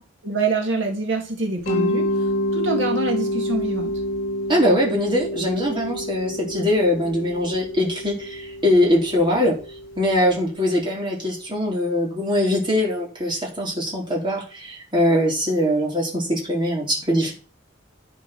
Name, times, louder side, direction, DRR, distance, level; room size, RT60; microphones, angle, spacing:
voice 1, 0.2-2.1 2.5-3.9, right 3 dB, 70° right, 2 dB, 2.1 m, -25 dB
Mallet percussion, 1.7-10.4, left 1 dB, 45° left, 3.8 m, -28 dB
voice 2, 4.5-9.6 10.0-17.3, left 1 dB, 25° right, -2 dB, 3.7 m, -22 dB
11.5 x 5.4 x 6.1 m, 0.38 s
head